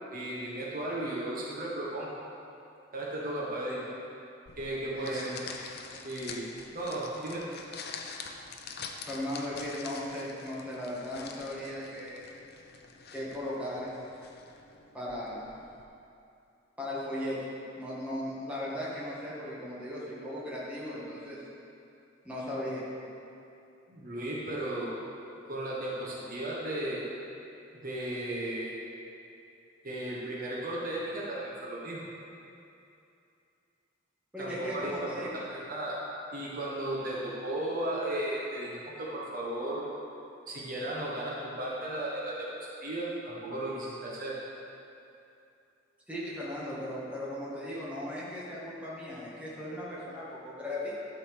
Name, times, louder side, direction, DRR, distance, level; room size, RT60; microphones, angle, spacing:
voice 1, 0.1-2.1 2.9-3.9 4.6-5.3 6.0-7.5 23.9-25.0 25.5-27.1 27.7-28.7 29.8-32.0 34.4-35.1 35.5-36.0 36.3-39.8 40.5-44.4, right 1 dB, 45° right, -6 dB, 1.3 m, -35 dB
sound 1, 4.5-15.8, left 5 dB, 55° left, 0.7 m, -46 dB
voice 2, 4.9-5.4 9.0-12.2 13.1-13.9 14.9-15.4 16.8-17.4 17.8-21.4 22.2-22.8 34.3-35.4 46.1-50.9, left 1 dB, 5° right, -8 dB, 2.0 m, -37 dB
12.0 x 4.3 x 6.6 m, 2.7 s
head